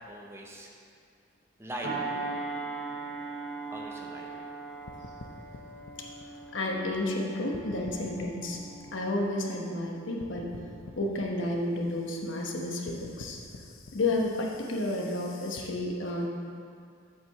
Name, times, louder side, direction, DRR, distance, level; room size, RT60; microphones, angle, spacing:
voice 1, 0.1-0.7 1.6-2.3 3.7-4.5 4.7-4.8, equal, 15° right, -1 dB, 0.7 m, -41 dB
sound 1, 1.8-10.7 11.1-11.4, right 3 dB, 70° right, 2.4 m, -40 dB
sound 2, 4.9-7.2 7.5-9.9 10.2-15.6, left 2 dB, 85° left, 0.7 m, -48 dB
voice 2, 6.5-8.6 8.9-10.5 11.0-13.4 13.9-16.3, left 2 dB, 65° left, 0 dB, 1.1 m, -31 dB
7.7 x 5.0 x 6.7 m, 2.3 s
head